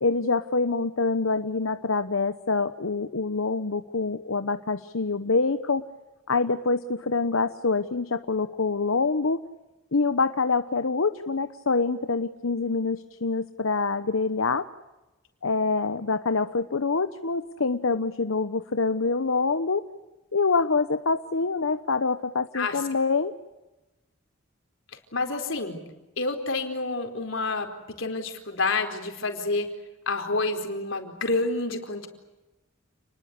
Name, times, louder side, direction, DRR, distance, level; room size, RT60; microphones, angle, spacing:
voice 1, 0.0-5.9 6.3-9.4 9.9-14.7 15.4-19.8 20.3-23.3, left 4 dB, 90° left, 10 dB, 1.0 m, -25 dB
voice 2, 25.1-25.8 26.2-29.7 30.1-32.1, left 3 dB, 70° left, 5 dB, 4.5 m, -28 dB
29.5 x 21.0 x 8.3 m, 1.1 s
head